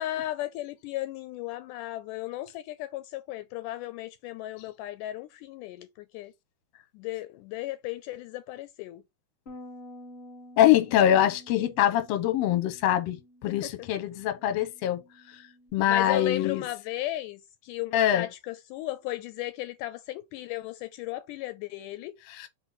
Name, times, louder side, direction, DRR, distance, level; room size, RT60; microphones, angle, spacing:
voice 1, 0.0-6.3 6.9-9.0 13.5-13.9 15.9-22.2, left 15 dB, 80° left, 2.0 m, -35 dB
Bass guitar, 9.5-15.7, left 1 dB, 45° left, 0.8 m, -50 dB
voice 2, 10.6-15.0 15.7-16.6 17.9-18.3 22.4-22.5, left 11 dB, 65° left, 1.8 m, -24 dB
4.3 x 4.1 x 5.5 m
omnidirectional pair, 3.8 m